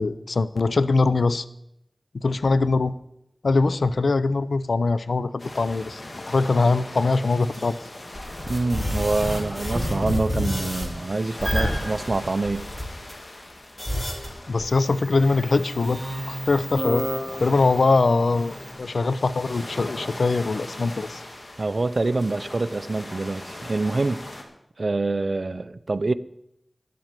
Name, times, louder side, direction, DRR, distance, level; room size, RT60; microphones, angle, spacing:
voice 1, 0.0-1.4 2.1-2.9 3.4-6.0 6.3-7.8 14.5-16.0 16.3-17.0 17.4-21.2, left 3 dB, 85° left, 16 dB, 0.6 m, -22 dB
sound 1, 5.4-24.4, left 1 dB, 55° left, 2.7 m, -40 dB
sound 2, 7.5-7.7 8.2-11.0 11.4-13.1 13.8-14.3 14.6-18.7, equal, 20° left, 3.9 m, -30 dB
voice 2, 8.5-12.6 21.6-24.2 24.8-26.1, right 3 dB, 60° right, 14 dB, 0.7 m, -26 dB
12.5 x 7.7 x 9.1 m, 0.79 s
cardioid pair, 40°, 0 cm